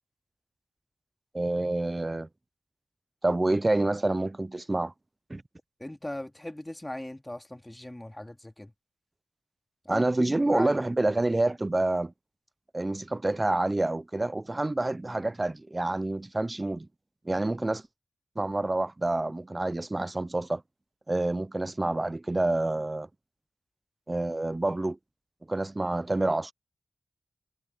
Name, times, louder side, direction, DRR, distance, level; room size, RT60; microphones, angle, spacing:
voice 1, 1.3-2.3 3.2-4.9 5.3-5.4 9.9-12.1 12.7-16.9 17.2-17.8 18.4-20.6 21.1-23.1 24.1-25.0 25.5-26.5, right 2 dB, 30° right, 0.6 m, -28 dB
voice 2, 5.8-8.7 9.8-10.7, left 1 dB, 15° left, 2.5 m, -38 dB
cardioid pair, 50°, 0 cm